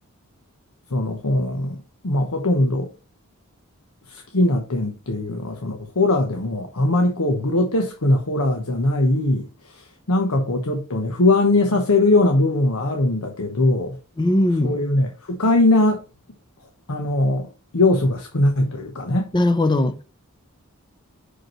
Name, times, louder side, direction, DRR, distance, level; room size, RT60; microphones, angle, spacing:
voice 1, 0.9-1.8 2.0-2.9 4.1-14.0 14.6-16.0 16.9-19.3, left 2 dB, 80° left, 1.0 m, -21 dB
voice 2, 14.2-14.8 19.3-20.0, left 1 dB, 20° left, 0.5 m, -19 dB
6.0 x 5.2 x 3.1 m
head